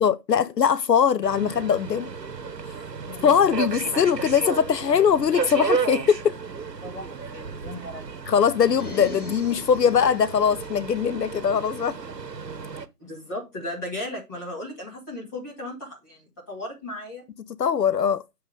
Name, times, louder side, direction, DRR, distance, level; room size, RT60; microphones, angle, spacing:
voice 1, 0.0-2.1 3.2-6.4 8.3-12.0 17.6-18.2, left 7 dB, 80° left, 0.7 m, -21 dB
Subway metro underground, 1.2-12.9, right 5 dB, 85° right, 1.1 m, -33 dB
voice 2, 3.1-3.4 6.8-8.3 13.0-17.2, left 1 dB, 10° left, 2.2 m, -36 dB
sound 1, 8.6-10.2, left 2 dB, 65° left, 2.2 m, -38 dB
7.8 x 3.8 x 5.1 m
figure-of-eight pair, 170°, 48 cm